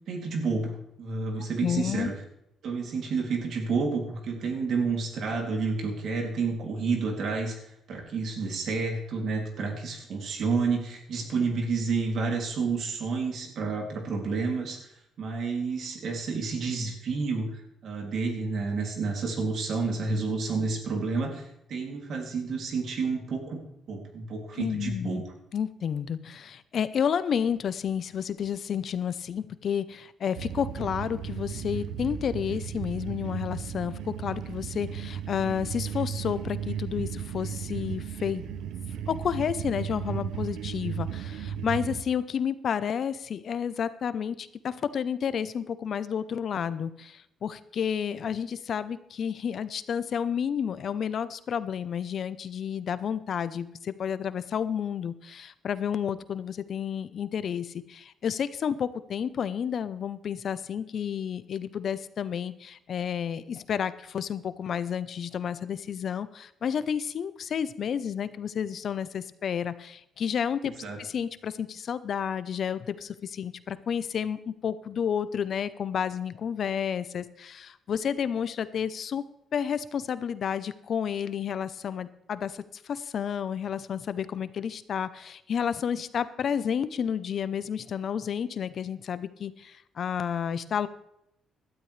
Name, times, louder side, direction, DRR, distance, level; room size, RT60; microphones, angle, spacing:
voice 1, 0.1-2.1 2.6-14.9 15.2-23.6 23.9-25.2 70.8-71.0, right 4 dB, 65° right, 2 dB, 2.7 m, -30 dB
voice 2, 1.4-2.1 24.5-25.2 25.5-38.4 39.1-79.2 79.5-90.9, left 8 dB, 55° left, 14 dB, 0.7 m, -31 dB
sound 1, 30.3-42.0, right 8 dB, 80° right, 0.8 m, -35 dB
17.0 x 12.5 x 3.3 m, 0.79 s
cardioid pair, 90°, 0 cm